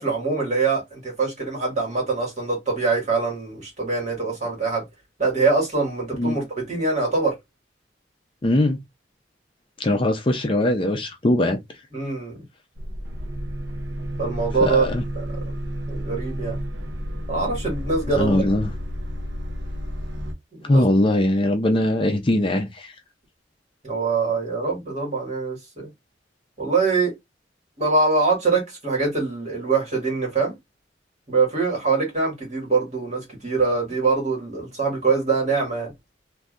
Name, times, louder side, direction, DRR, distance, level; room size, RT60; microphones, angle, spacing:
voice 1, 0.0-4.8 5.2-7.4 11.9-12.4 14.2-14.9 15.2-15.4 15.9-16.6 17.3-18.4 20.5-20.9 23.8-25.9 26.6-27.1 27.8-30.6 31.3-35.9, right 4 dB, 40° right, 1.9 m, -23 dB
voice 2, 8.4-8.8 9.8-11.6 14.6-15.0 18.1-18.7 20.7-22.9, left 1 dB, 30° left, 0.5 m, -21 dB
sound 1, 12.8-20.3, equal, 75° right, 0.7 m, -31 dB
3.4 x 2.7 x 2.5 m
head